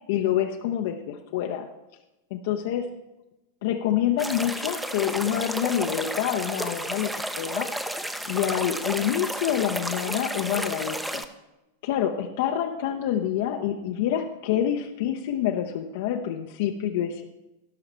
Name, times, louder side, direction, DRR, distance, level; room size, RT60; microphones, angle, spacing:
voice 1, 0.1-1.7 2.3-2.9 3.6-7.1 7.4-7.7 8.3-11.2 11.8-17.2, left 10 dB, 50° left, 4 dB, 0.6 m, -27 dB
sound 1, 4.2-11.3, right 1 dB, 5° right, 0.6 m, -32 dB
17.0 x 5.8 x 4.4 m, 0.99 s
figure-of-eight pair, 90°, 0 cm